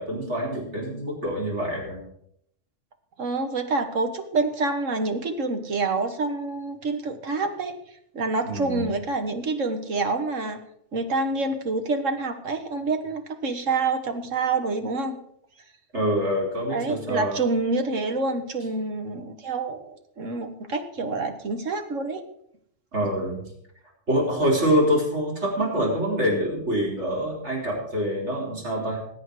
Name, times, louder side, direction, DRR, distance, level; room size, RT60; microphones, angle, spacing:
voice 1, 0.0-2.0 8.5-8.9 15.9-17.4 22.9-23.4 24.1-29.0, equal, 60° right, -3 dB, 4.8 m, -25 dB
voice 2, 3.2-7.8 8.1-10.6 10.9-15.2 16.7-22.2, right 3 dB, 80° right, 7 dB, 1.8 m, -27 dB
19.5 x 8.6 x 4.8 m, 0.71 s
omnidirectional pair, 1.3 m